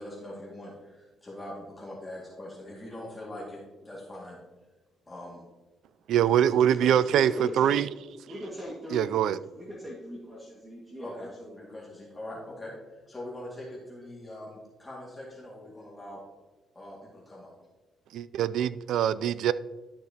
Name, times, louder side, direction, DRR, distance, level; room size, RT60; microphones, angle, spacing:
voice 1, 0.0-4.4 5.1-5.4 6.5-7.2 11.0-11.3 11.6-16.2 16.7-17.5, left 1 dB, 20° left, -4 dB, 2.1 m, -42 dB
voice 2, 6.1-7.9 8.9-9.4 18.1-19.5, right 10 dB, 80° right, 17 dB, 0.3 m, -24 dB
voice 3, 7.1-7.8 8.3-9.1 9.6-11.7, equal, 25° right, -5 dB, 1.9 m, -40 dB
12.0 x 6.4 x 2.9 m, 1.2 s
cardioid pair, 90°, 0 cm